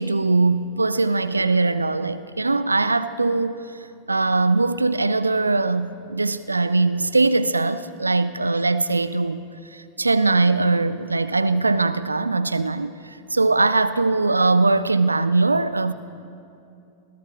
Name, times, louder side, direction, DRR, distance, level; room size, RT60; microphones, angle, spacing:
voice 1, 0.0-3.8 4.1-9.4 9.7-15.9, right 3 dB, 80° right, 0.3 m, -21 dB
20.5 x 14.5 x 3.8 m
figure-of-eight pair, 90°, 0 cm